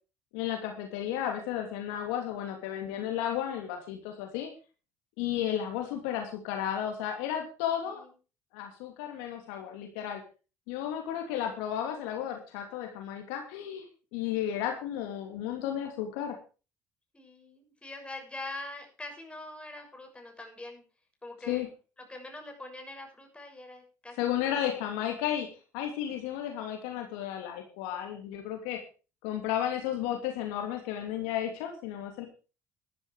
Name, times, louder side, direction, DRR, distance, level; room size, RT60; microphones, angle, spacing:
voice 1, 0.3-4.5 5.2-8.0 8.5-10.2 10.7-13.9 14.1-16.4 21.5-21.7 24.2-25.5 25.7-28.8 29.2-32.3, left 10 dB, 80° left, 3 dB, 2.7 m, -33 dB
voice 2, 17.1-20.8 21.2-21.6 22.0-24.2 24.4-24.6, left 2 dB, 15° left, 3 dB, 6.8 m, -43 dB
13.0 x 12.5 x 4.9 m, 0.34 s
hypercardioid pair, 65°, 7 cm